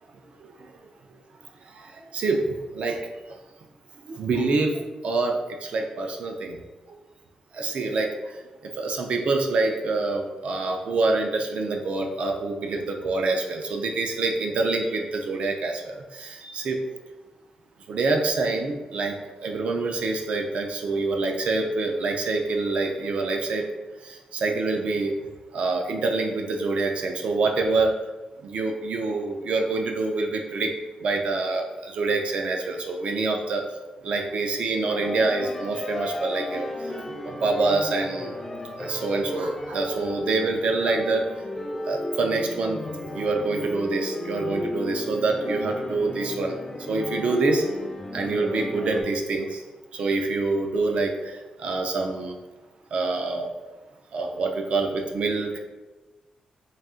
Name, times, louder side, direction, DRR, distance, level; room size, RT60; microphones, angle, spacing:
voice 1, 1.7-3.1 4.1-6.6 7.5-8.4 8.8-16.8 17.9-23.7 24.0-25.1 25.5-27.9 28.4-30.7 31.0-33.6 34.0-36.7 37.2-38.4 38.8-41.3 41.8-42.8 43.1-46.6 46.9-47.6 48.1-49.6 49.9-52.3 52.9-53.5 54.1-55.6, right 3 dB, 55° right, 3 dB, 0.4 m, -26 dB
sound 1, 34.9-49.0, left 2 dB, 15° left, 0.3 m, -34 dB
4.0 x 2.4 x 3.6 m, 1.2 s
wide cardioid pair, 175°, 2 cm